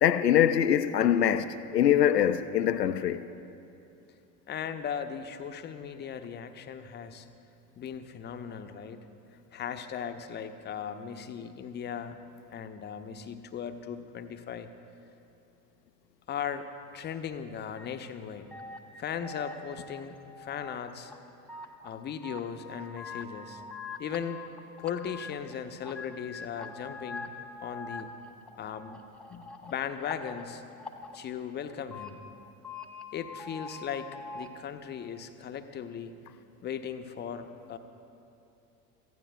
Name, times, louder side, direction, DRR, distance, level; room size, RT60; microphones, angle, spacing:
voice 1, 0.0-3.2, left 10 dB, 80° left, 0.6 m, -23 dB
voice 2, 4.5-7.3 7.8-9.0 9.5-12.2 12.5-14.7 16.3-16.7 16.9-18.5 19.0-21.1 21.8-23.6 24.0-24.4 24.8-27.3 27.6-28.1 28.6-29.0 29.3-30.6 31.1-32.2 33.1-36.1 36.6-37.8, left 8 dB, 20° left, 0.7 m, -37 dB
sound 1, 17.7-17.9 18.5-20.8 21.1-21.9 22.2-25.5 25.8-31.2 31.7-32.1 32.5-34.5, left 3 dB, ahead, 0.3 m, -44 dB
26.0 x 15.0 x 2.3 m
figure-of-eight pair, 75°, 48 cm